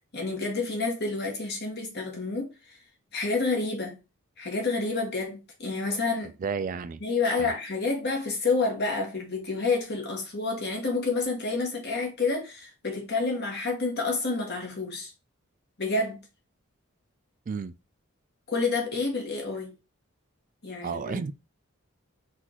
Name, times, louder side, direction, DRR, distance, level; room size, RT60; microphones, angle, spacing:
voice 1, 0.1-2.5 3.1-4.0 4.4-6.3 7.0-15.1 15.8-16.2 18.5-19.8 20.6-21.2, left 3 dB, 50° left, 1.6 m, -29 dB
voice 2, 6.4-7.0 7.4-7.5 17.5-17.7 20.8-21.3, right 5 dB, 40° right, 0.3 m, -32 dB
4.0 x 2.6 x 4.4 m
head